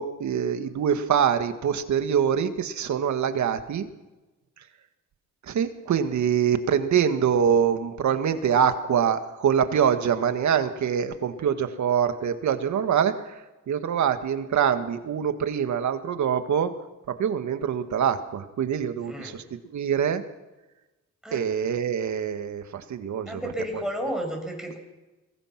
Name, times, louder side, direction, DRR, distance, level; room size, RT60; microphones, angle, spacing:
voice 1, 0.0-3.9 5.5-13.3 13.7-16.7 17.1-19.4 19.7-20.2 21.3-23.4 23.7-23.8, right 8 dB, 70° right, 8 dB, 1.8 m, -24 dB
voice 2, 19.0-19.4 21.2-21.4 23.3-24.8, equal, ahead, 2 dB, 7.1 m, -32 dB
23.0 x 20.0 x 6.0 m, 1.1 s
cardioid pair, 85°, 30 cm